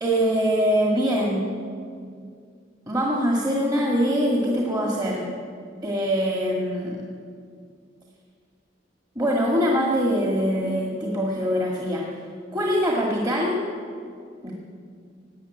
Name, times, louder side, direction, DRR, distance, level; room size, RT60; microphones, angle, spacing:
voice 1, 0.0-1.5 2.9-5.3 5.8-7.0 9.2-12.1 12.5-13.6 14.4-14.5, equal, 25° right, -2 dB, 1.8 m, -23 dB
17.5 x 8.5 x 9.8 m, 2.2 s
head